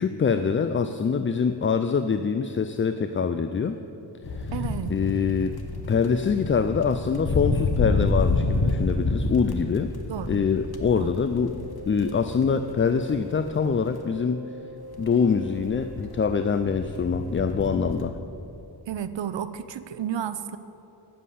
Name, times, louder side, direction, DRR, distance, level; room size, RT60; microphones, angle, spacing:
voice 1, 0.0-3.8 4.4-4.5 4.9-5.6 5.9-9.9 10.3-11.6 11.9-14.4 15.0-18.2, left 6 dB, 30° left, 9 dB, 0.4 m, -24 dB
sound 1, 4.2-14.0 14.9-18.1, left 3 dB, 50° left, 1.1 m, -29 dB
voice 2, 4.5-4.9 10.1-10.4 10.9-11.1 18.9-20.6, right 9 dB, 65° right, 13 dB, 0.7 m, -32 dB
Wind instrument woodwind instrument, 10.0-17.0, equal, 10° left, 2.5 m, -44 dB
9.4 x 7.4 x 8.3 m, 2.9 s
cardioid pair, 65°, 47 cm